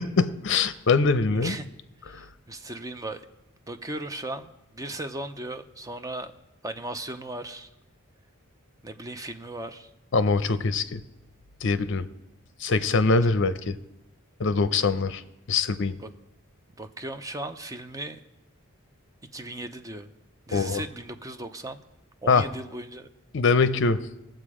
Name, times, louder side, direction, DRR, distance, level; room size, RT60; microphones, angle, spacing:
voice 1, 0.0-1.6 2.1-2.2 10.1-11.0 11.6-12.1 12.6-13.8 14.4-15.2 15.5-16.0 20.5-20.8 22.3-22.5 23.3-24.1, left 4 dB, 60° left, 13 dB, 0.6 m, -23 dB
voice 2, 1.3-1.7 2.0-3.2 3.7-6.3 6.6-7.7 8.8-9.9 16.0-16.1 16.8-18.2 19.3-20.1 20.5-21.8 22.2-23.1, right 1 dB, 15° right, 8 dB, 0.6 m, -37 dB
18.5 x 7.7 x 4.9 m, 0.94 s
head